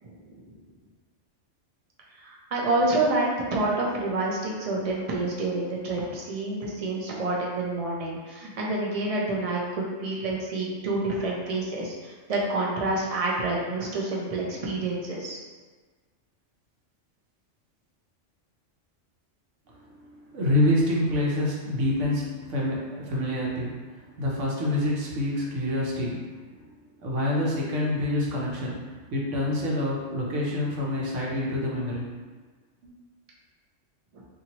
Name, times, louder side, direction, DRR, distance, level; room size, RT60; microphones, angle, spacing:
voice 1, 0.0-0.5 2.2-15.4 34.1-34.2, right 2 dB, 50° right, -3 dB, 0.4 m, -28 dB
voice 2, 20.3-26.3 26.5-26.6 27.0-32.1 32.8-32.9, left 1 dB, 75° right, -4 dB, 1.1 m, -27 dB
2.8 x 2.7 x 2.8 m, 1.4 s
omnidirectional pair, 1.3 m